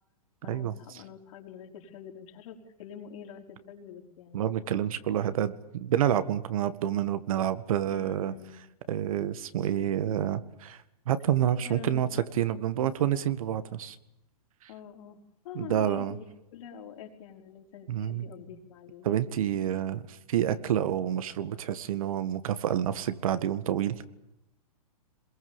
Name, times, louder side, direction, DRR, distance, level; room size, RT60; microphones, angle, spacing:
voice 1, 0.4-4.5 7.9-8.6 11.6-12.1 14.7-19.5, left 8 dB, 55° left, 2 dB, 4.8 m, -46 dB
voice 2, 4.3-8.3 8.9-10.8 11.1-12.1 12.4-14.0 15.6-16.2 17.9-18.2 19.0-24.0, right 10 dB, 65° right, 12 dB, 1.9 m, -28 dB
27.5 x 21.5 x 7.3 m, 0.89 s
hypercardioid pair, 130°, 19 cm